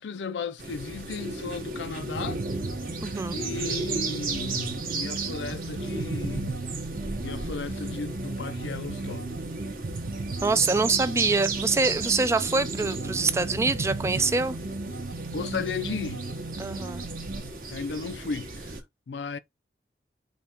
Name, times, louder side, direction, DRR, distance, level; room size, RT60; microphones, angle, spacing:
voice 1, 0.0-2.4 3.3-6.6 7.2-9.3 15.3-16.3 17.7-18.8 19.1-19.4, left 4 dB, 85° left, 0.5 m, -35 dB
sound 1, 0.6-18.8, right 3 dB, 50° right, 1.1 m, -35 dB
sound 2, 2.2-17.5, right 2 dB, 70° right, 0.7 m, -35 dB
voice 2, 3.0-3.4 10.4-14.6 16.6-17.0, right 3 dB, 15° right, 0.3 m, -25 dB
5.2 x 2.4 x 4.3 m
head